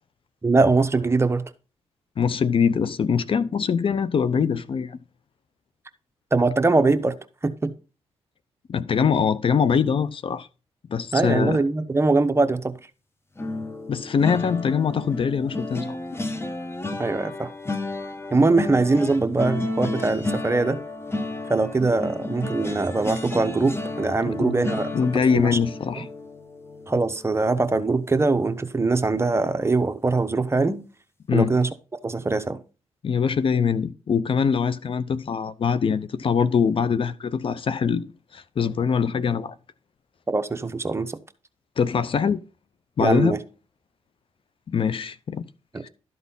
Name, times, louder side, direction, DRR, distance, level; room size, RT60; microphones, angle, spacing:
voice 1, 0.4-1.4 6.3-7.1 7.4-7.7 11.1-12.8 17.0-17.5 18.3-20.8 21.5-25.6 26.9-30.8 31.3-31.7 32.0-32.6 40.3-41.2 43.0-43.4 45.7-45.8, right 3 dB, 25° right, 1.0 m, -22 dB
voice 2, 2.2-5.0 8.7-10.5 10.9-11.6 13.9-16.0 24.2-26.1 31.3-31.5 33.0-38.0 38.3-39.6 41.8-42.4 43.0-43.3 44.7-45.4 45.8-45.9, left 6 dB, 50° left, 0.6 m, -23 dB
sound 1, 13.4-28.5 28.9-29.2 29.5-29.7, left 2 dB, 20° left, 1.2 m, -32 dB
12.5 x 4.1 x 5.5 m
cardioid pair, 70°, 11 cm